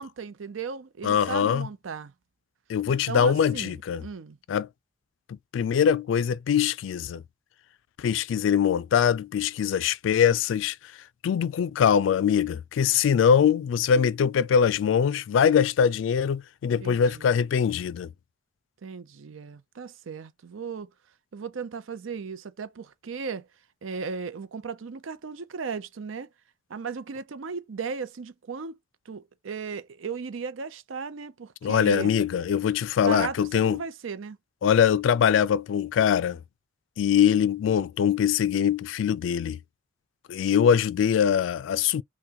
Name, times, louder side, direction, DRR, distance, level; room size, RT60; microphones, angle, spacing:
voice 1, 0.0-2.1 2.9-4.4 16.8-17.3 18.8-20.9 21.3-23.5 23.8-26.3 26.7-28.8 29.1-32.1 33.0-34.4, right 5 dB, 90° right, 0.5 m, -36 dB
voice 2, 1.0-1.7 2.7-4.0 4.5-4.7 5.3-7.2 8.0-10.8 11.2-18.1 31.6-33.8 34.6-36.4 37.0-39.6 40.3-42.0, left 8 dB, 80° left, 0.3 m, -23 dB
5.7 x 2.2 x 2.9 m
head